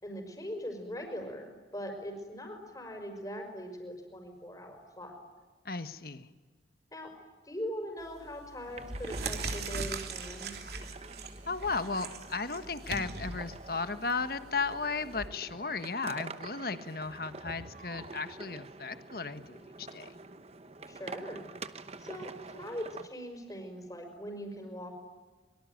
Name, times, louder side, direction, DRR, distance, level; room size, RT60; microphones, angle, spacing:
voice 1, 0.0-5.2 6.9-7.1 7.4-10.5 20.9-21.5 22.0-24.9, equal, 20° left, 4 dB, 5.6 m, -41 dB
voice 2, 5.6-6.3 11.5-20.1, left 4 dB, 55° left, 10 dB, 1.4 m, -35 dB
sound 1, 8.0-8.3 8.8-15.3, right 3 dB, 60° right, 3.1 m, -40 dB
sound 2, 8.7-23.1, right 3 dB, 35° right, 1.0 m, -47 dB
25.0 x 23.5 x 9.4 m, 1.3 s
head